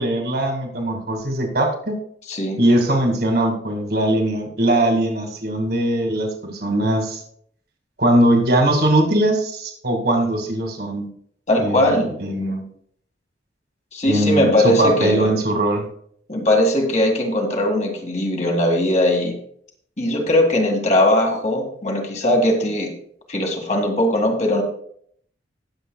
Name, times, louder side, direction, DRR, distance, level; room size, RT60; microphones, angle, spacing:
voice 1, 0.0-2.0 2.6-7.2 8.0-11.1 11.6-12.6 14.1-15.9, right 1 dB, 60° right, 2 dB, 2.1 m, -20 dB
voice 2, 2.3-2.6 11.5-12.1 13.9-15.3 16.3-19.3 20.0-22.9 23.3-24.6, left 1 dB, 40° left, 2 dB, 1.9 m, -19 dB
19.5 x 7.4 x 2.3 m, 0.64 s
head